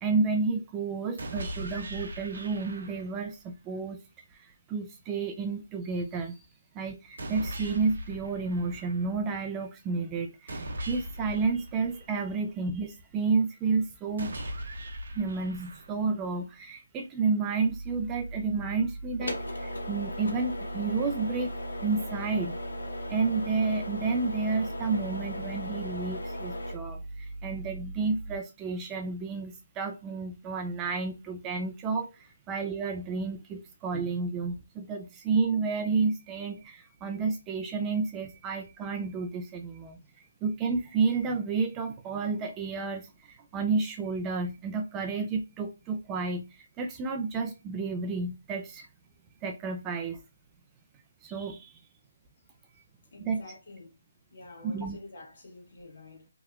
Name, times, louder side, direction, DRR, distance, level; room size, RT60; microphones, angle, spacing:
voice 1, 0.0-4.0 4.3-6.4 6.7-14.3 15.1-21.5 21.8-22.5 23.1-48.9 49.4-50.2 51.2-51.8 53.2-53.4 54.6-55.0, right 4 dB, 15° right, 0.3 m, -31 dB
sound 1, 1.2-3.2 7.2-9.2 10.5-12.5 14.2-16.2, right 1 dB, 60° right, 0.7 m, -39 dB
sound 2, 17.7-28.4, equal, 90° left, 1.1 m, -37 dB
voice 2, 53.1-53.9 54.3-56.3, left 2 dB, 50° left, 1.7 m, -48 dB
2.9 x 2.8 x 2.3 m
figure-of-eight pair, 160°, 0 cm